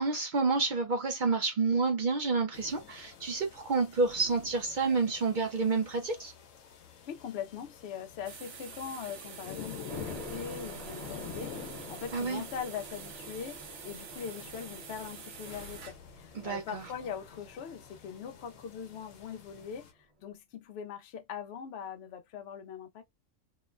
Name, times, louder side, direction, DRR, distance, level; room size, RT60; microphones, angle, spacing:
voice 1, 0.0-6.3 12.1-12.4 16.3-16.8, right 4 dB, 55° right, 0.6 m, -29 dB
sound 1, 2.5-19.9, left 8 dB, 85° left, 1.1 m, -48 dB
voice 2, 7.1-23.0, left 7 dB, 65° left, 0.8 m, -41 dB
sound 2, 8.2-16.0, right 7 dB, 75° right, 0.9 m, -47 dB
sound 3, 9.9-20.0, right 1 dB, 30° right, 0.9 m, -49 dB
2.9 x 2.1 x 2.4 m
omnidirectional pair, 1.3 m